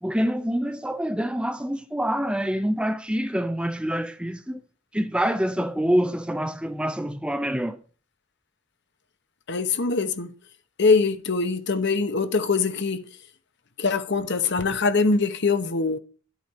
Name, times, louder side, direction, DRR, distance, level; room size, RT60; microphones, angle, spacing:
voice 1, 0.0-4.6 4.9-7.8, equal, 5° right, 0.5 m, -26 dB
voice 2, 9.5-10.3 10.8-13.0 13.8-16.0, left 4 dB, 55° left, 1.0 m, -23 dB
12.0 x 8.3 x 4.1 m
head